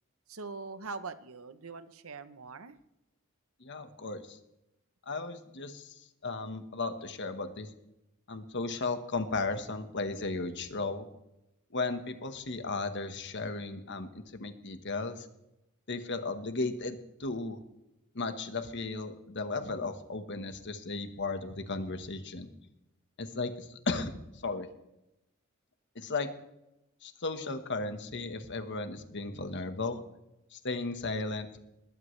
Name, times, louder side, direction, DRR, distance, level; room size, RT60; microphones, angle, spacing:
voice 1, 0.3-2.8, right 4 dB, 75° right, 12 dB, 0.9 m, -42 dB
voice 2, 3.6-4.4 5.1-7.7 8.3-11.1 11.7-15.3 15.9-17.6 18.1-22.5 23.2-24.1 24.4-24.7 25.9-26.3 27.0-30.0 30.5-31.6, left 3 dB, 55° left, 8 dB, 1.4 m, -35 dB
20.5 x 16.0 x 3.3 m, 0.90 s
head